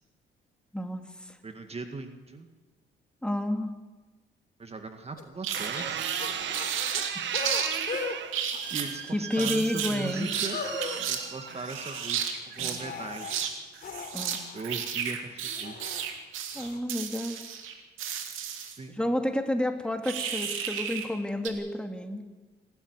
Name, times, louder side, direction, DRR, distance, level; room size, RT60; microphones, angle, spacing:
voice 1, 0.7-1.4 3.2-3.7 7.0-7.3 8.6-8.7 9.1-10.3 14.1-14.4 16.5-17.4 18.9-22.2, left 1 dB, 5° left, 5 dB, 2.6 m, -30 dB
voice 2, 1.4-2.5 4.6-6.1 8.7-13.4 14.5-15.8 18.8-19.0, right 4 dB, 30° right, 6 dB, 2.0 m, -39 dB
sound 1, 5.2-5.3 5.7-5.9 6.2-8.1 8.5-9.0 9.3-9.5 10.1-12.1 12.5-13.4 13.8-16.1 16.5-16.8, left 4 dB, 50° left, 3.6 m, -39 dB
sound 2, 5.4-5.7 6.0-7.9 8.3-8.9 9.4-10.5 10.8-11.2 11.5-12.8 13.1-13.5 13.8-18.8 20.0-21.1 21.4-21.5, right 8 dB, 90° right, 2.4 m, -33 dB
sound 3, 5.5-11.9 12.6-13.1, right 8 dB, 65° right, 1.6 m, -36 dB
26.5 x 12.5 x 9.8 m, 1.3 s
cardioid pair, 90°, 20 cm